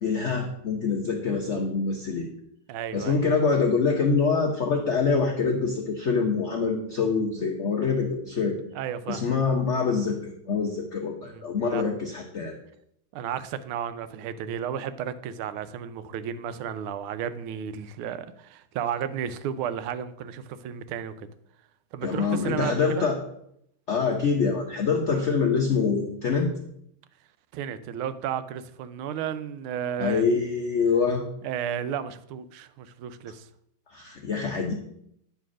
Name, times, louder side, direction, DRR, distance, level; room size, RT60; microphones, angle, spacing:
voice 1, 0.0-2.3 2.9-8.6 9.1-12.5 22.0-23.2 23.9-26.5 30.0-31.2 33.9-34.7, left 5 dB, 70° left, 1 dB, 0.6 m, -25 dB
voice 2, 2.7-3.2 8.7-9.2 11.2-11.8 13.1-21.3 21.9-23.1 27.5-30.4 31.4-33.5, right 8 dB, 85° right, 12 dB, 1.4 m, -33 dB
9.1 x 3.4 x 6.2 m, 0.73 s
omnidirectional pair, 2.3 m